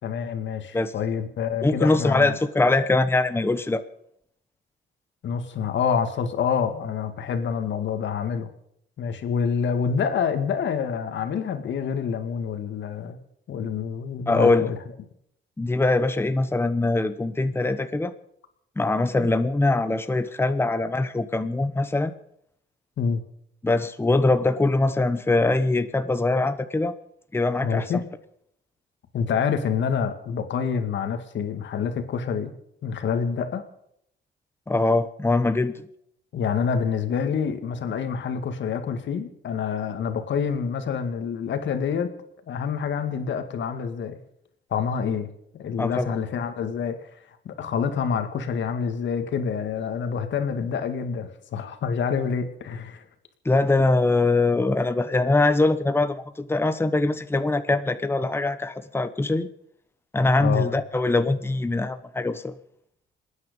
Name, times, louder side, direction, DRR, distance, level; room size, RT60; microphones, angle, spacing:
voice 1, 0.0-2.4 5.2-8.5 9.0-13.2 13.5-14.8 19.2-19.3 23.0-23.2 27.6-28.1 29.1-32.5 32.8-33.6 36.3-42.1 42.5-44.2 44.7-45.3 45.5-47.0 47.5-53.0 60.4-60.7, left 6 dB, 65° left, 7 dB, 2.2 m, -27 dB
voice 2, 1.6-3.8 14.3-14.6 15.6-18.1 18.8-22.1 23.6-27.0 27.3-27.9 34.7-35.8 45.8-46.1 53.4-59.5 60.1-62.6, left 2 dB, 10° left, 10 dB, 1.0 m, -22 dB
27.0 x 9.6 x 5.4 m, 0.73 s
cardioid pair, 90°, 20 cm